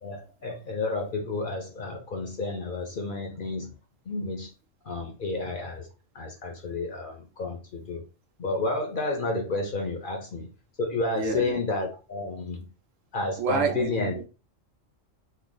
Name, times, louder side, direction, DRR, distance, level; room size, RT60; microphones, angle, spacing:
voice 1, 0.0-3.7 4.1-4.5 4.9-5.9 6.1-8.0 8.4-10.5 10.8-12.7 13.1-14.1, left 3 dB, 50° left, 0.7 m, -31 dB
voice 2, 11.1-11.6 13.4-14.3, right 5 dB, 80° right, 1.1 m, -29 dB
3.2 x 2.0 x 3.8 m
omnidirectional pair, 1.3 m